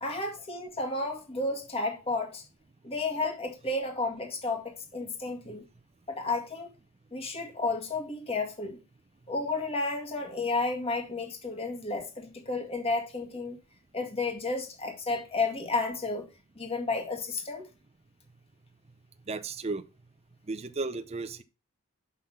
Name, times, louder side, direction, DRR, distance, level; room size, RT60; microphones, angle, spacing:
voice 1, 0.0-2.4 2.8-5.6 6.1-6.7 7.1-8.8 9.3-13.6 13.9-16.2 16.6-17.7, left 3 dB, 25° left, 2.0 m, -32 dB
voice 2, 19.3-19.8 20.5-21.4, right 3 dB, 30° right, 0.6 m, -34 dB
7.0 x 5.7 x 5.9 m
head